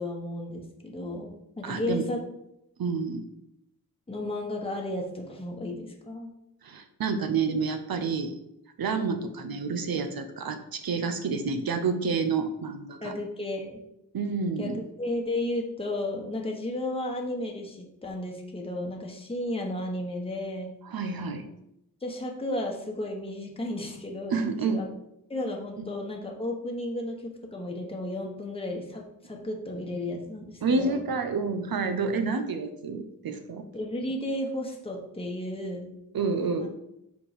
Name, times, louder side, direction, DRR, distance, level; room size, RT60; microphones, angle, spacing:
voice 1, 0.0-2.2 4.1-6.3 13.0-13.8 14.6-20.7 22.0-24.4 24.6-24.9 25.3-31.0 33.7-36.0 36.6-36.7, left 1 dB, 15° left, 0 dB, 1.0 m, -33 dB
voice 2, 1.6-2.0 2.8-3.2 6.6-8.3 8.8-13.1 14.1-14.8 20.8-21.4 24.3-24.8 25.8-25.9 29.3-29.4 30.6-33.6 36.1-36.7, right 4 dB, 85° right, 8 dB, 0.8 m, -29 dB
5.1 x 4.6 x 5.0 m, 0.82 s
wide cardioid pair, 105°, 35 cm